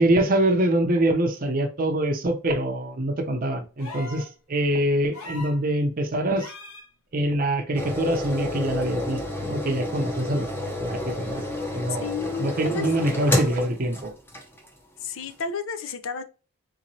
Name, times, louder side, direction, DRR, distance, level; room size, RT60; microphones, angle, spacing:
voice 1, 0.0-6.5 7.1-10.5 10.8-11.4 11.7-12.1 12.4-14.1, right 1 dB, 40° right, 0.6 m, -24 dB
sound 1, 3.8-4.3 5.1-5.6 6.4-6.9 8.3-8.4, left 2 dB, 80° left, 1.2 m, -39 dB
sound 2, 7.7-14.8 15.3-15.4, left 1 dB, 10° left, 0.6 m, -30 dB
voice 2, 12.0-12.9 15.0-16.2, left 5 dB, 60° left, 0.5 m, -31 dB
3.8 x 3.0 x 2.6 m
head